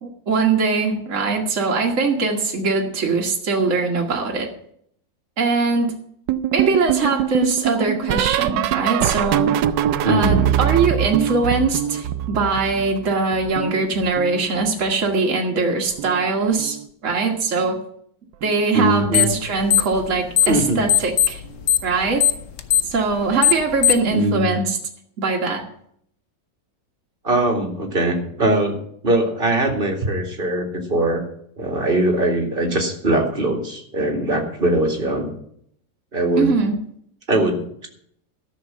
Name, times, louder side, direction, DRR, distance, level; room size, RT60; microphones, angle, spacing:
voice 1, 0.0-4.5 5.4-5.9 6.5-9.6 10.0-16.8 17.0-17.8 18.4-21.4 21.8-22.3 22.8-24.8 25.2-25.6 36.4-36.8, right 4 dB, 45° right, 0 dB, 1.8 m, -21 dB
sound 1, 6.3-13.1 13.3-14.9 15.9-16.3 16.5-16.9 18.4-18.7 19.0-19.3 20.8-20.9, right 11 dB, 80° right, 1.3 m, -23 dB
voice 2, 10.0-10.5 18.7-19.3 20.5-20.8 24.1-24.5 27.2-28.8 29.0-31.2 31.6-35.3 36.1-36.6 37.3-37.9, right 1 dB, 30° right, 3 dB, 2.3 m, -21 dB
sound 2, 19.1-19.4 19.7-20.6 20.9-24.1, left 10 dB, 55° left, 1.0 m, -17 dB
13.0 x 6.7 x 7.3 m, 0.67 s
omnidirectional pair, 2.0 m